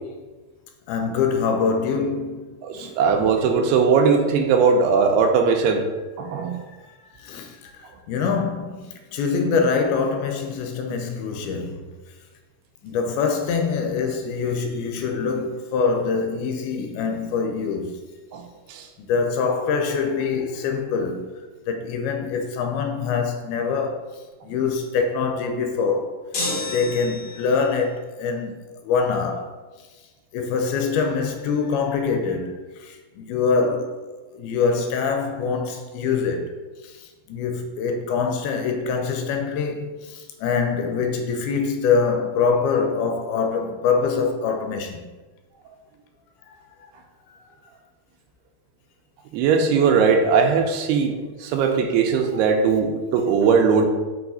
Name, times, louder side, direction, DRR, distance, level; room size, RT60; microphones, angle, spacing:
voice 1, 0.9-2.5 2.7-2.9 7.2-11.9 12.8-18.0 19.0-21.3 21.7-24.0 24.4-26.1 26.7-29.5 30.3-34.0 34.3-36.5 36.8-45.1 51.4-51.5, left 5 dB, 80° left, 2.4 m, -24 dB
voice 2, 2.6-5.9 6.2-6.6 18.3-18.8 49.3-51.1 51.4-53.9, right 5 dB, 90° right, 2.7 m, -19 dB
sound 1, 26.3-27.6, left 2 dB, 60° left, 1.3 m, -29 dB
5.9 x 4.7 x 4.0 m
omnidirectional pair, 4.6 m